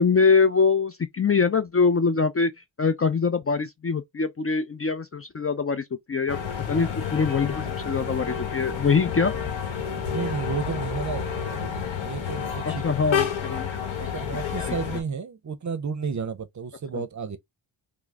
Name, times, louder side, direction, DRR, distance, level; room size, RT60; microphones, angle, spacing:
voice 1, 0.0-2.5 2.8-6.4 6.7-9.3 12.7-13.8 16.9-17.0, left 5 dB, 30° left, 0.4 m, -23 dB
sound 1, 6.3-15.0, left 7 dB, 65° left, 1.2 m, -30 dB
voice 2, 10.1-11.5 12.0-12.8 13.9-17.4, right 5 dB, 35° right, 0.6 m, -32 dB
3.6 x 2.0 x 3.3 m
cardioid pair, 75°, 50 cm